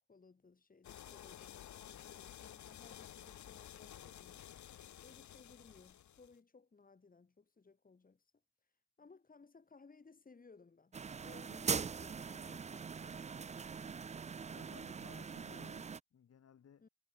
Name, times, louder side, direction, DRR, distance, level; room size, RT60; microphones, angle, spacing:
voice 1, 0.1-4.4 5.0-8.3 9.0-11.0 11.2-13.9 16.8-16.9, left 4 dB, 30° left, 5.1 m, -62 dB
sound 1, 0.8-6.4, left 11 dB, 70° left, 4.0 m, -53 dB
sound 2, 10.9-16.0, right 6 dB, 25° right, 0.5 m, -42 dB
voice 2, 14.5-16.9, left 8 dB, 55° left, 6.8 m, -60 dB
cardioid pair, 90°, 30 cm